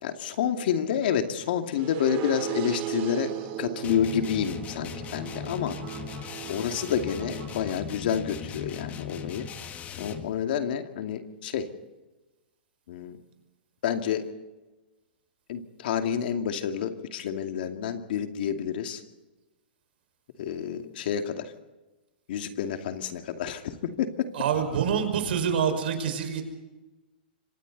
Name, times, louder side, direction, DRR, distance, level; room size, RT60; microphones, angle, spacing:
voice 1, 0.0-3.3 3.6-5.8 6.5-9.5 10.0-11.7 12.9-13.2 13.8-14.2 15.5-19.0 20.4-21.5 22.3-23.6 24.0-24.1, left 8 dB, 65° left, 5 dB, 2.4 m, -29 dB
sound 1, 1.7-7.7, right 12 dB, 45° right, 3.8 m, -37 dB
sound 2, 3.8-10.3, left 7 dB, 25° left, 1.9 m, -39 dB
voice 2, 24.3-26.4, right 7 dB, 70° right, 6 dB, 5.5 m, -26 dB
26.5 x 25.5 x 4.1 m, 1.1 s
hypercardioid pair, 130°, 6 cm